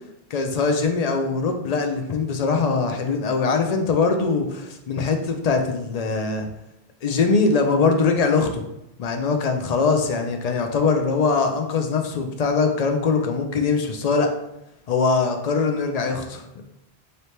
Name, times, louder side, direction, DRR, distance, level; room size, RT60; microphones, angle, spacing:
voice 1, 0.3-6.5 7.0-8.6 9.0-14.3 14.9-16.6, left 4 dB, 55° left, 4 dB, 0.5 m, -22 dB
3.3 x 2.7 x 4.2 m, 0.83 s
omnidirectional pair, 1.1 m